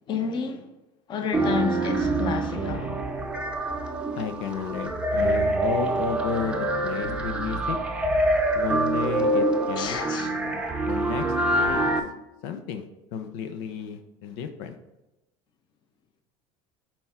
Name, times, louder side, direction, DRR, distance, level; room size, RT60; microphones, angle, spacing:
voice 1, 0.1-0.7 1.1-3.0 9.7-10.3, left 5 dB, 35° left, 0.9 m, -30 dB
sound 1, 1.3-12.0, right 1 dB, 5° right, 0.7 m, -25 dB
voice 2, 4.2-7.8 8.5-11.3 11.5-11.8 12.4-12.9 13.1-14.8, left 7 dB, 75° left, 0.8 m, -33 dB
8.5 x 4.6 x 3.7 m
cardioid pair, 155°, 14 cm